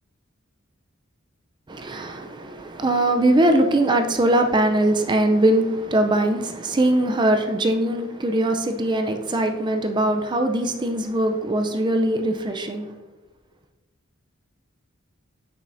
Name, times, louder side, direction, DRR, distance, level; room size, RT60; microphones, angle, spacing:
voice 1, 1.7-12.9, right 1 dB, 20° right, 0.4 m, -21 dB
8.0 x 6.3 x 2.6 m
head